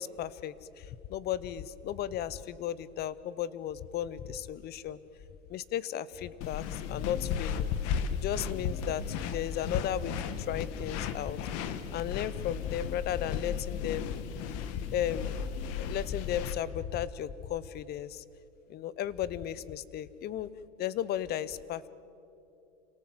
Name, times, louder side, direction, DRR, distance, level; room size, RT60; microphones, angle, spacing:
voice 1, 0.0-5.0 5.5-7.7 8.1-10.1 10.5-11.4 11.9-14.1 14.9-15.4 15.8-18.2 18.7-20.5 20.8-21.9, left 11 dB, 30° left, 18 dB, 0.8 m, -35 dB
sound 1, 6.4-16.5, left 7 dB, 45° left, 1.6 m, -35 dB
28.5 x 18.0 x 7.9 m, 2.7 s
supercardioid pair, 135°, 35 cm